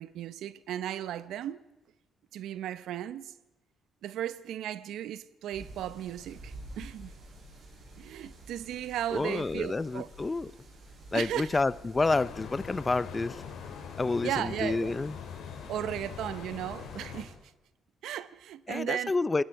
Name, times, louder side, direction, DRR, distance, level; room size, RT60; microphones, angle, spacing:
voice 1, 0.0-1.6 2.3-3.3 4.0-7.1 8.0-10.1 11.1-11.5 14.2-14.9 15.7-17.3 18.0-19.1, right 11 dB, 80° right, 0.8 m, -35 dB
sound 1, 5.5-17.3, right 1 dB, 60° right, 7.9 m, -50 dB
voice 2, 9.1-10.5 11.1-13.4 14.0-15.1 18.7-19.4, left 3 dB, 25° left, 0.6 m, -29 dB
sound 2, 12.0-17.2, left 7 dB, 80° left, 2.9 m, -42 dB
29.5 x 20.5 x 4.7 m
cardioid pair, 90°, 0 cm